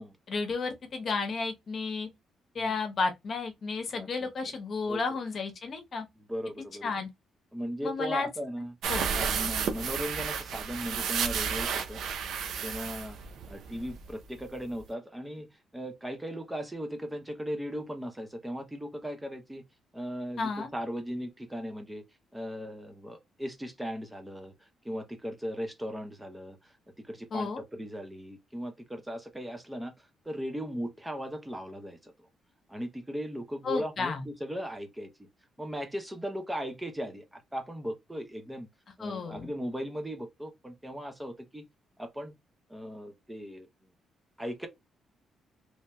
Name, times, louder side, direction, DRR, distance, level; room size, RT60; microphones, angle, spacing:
voice 1, 0.3-2.1 2.5-6.1 6.8-7.1 7.8-8.3 8.9-9.1 20.4-20.7 27.3-27.6 33.6-34.3 39.0-39.5, left 4 dB, 50° left, 0.9 m, -32 dB
voice 2, 3.9-4.3 4.8-5.2 6.2-6.9 7.5-8.7 9.1-12.0 12.6-13.2 13.5-19.6 19.9-22.0 22.3-24.5 24.8-32.3 32.7-35.3 35.6-38.7 39.0-41.6 42.0-42.3 42.7-43.7 44.4-44.7, equal, 10° right, 0.8 m, -38 dB
sound 1, 8.8-14.1 14.4-14.5 14.8-14.9, right 6 dB, 75° right, 0.6 m, -32 dB
3.2 x 2.7 x 2.2 m
cardioid pair, 90°, 0 cm